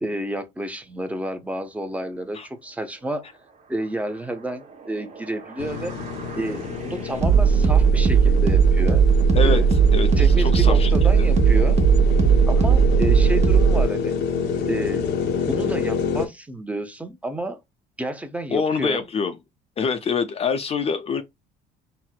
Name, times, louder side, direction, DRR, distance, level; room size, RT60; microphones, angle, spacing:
voice 1, 0.0-3.2 3.7-5.9 6.4-9.0 9.4-9.7 10.2-11.8 12.5-14.1 14.7-15.1 15.5-17.6 18.0-19.0, right 1 dB, 10° right, 0.6 m, -30 dB
sound 1, 5.2-13.8, right 6 dB, 40° right, 0.9 m, -18 dB
sound 2, 5.6-16.3, left 6 dB, 75° left, 0.6 m, -28 dB
voice 2, 9.9-11.1 18.5-19.3 19.8-21.2, left 5 dB, 35° left, 0.4 m, -25 dB
4.1 x 2.0 x 2.2 m
cardioid pair, 110°, 17 cm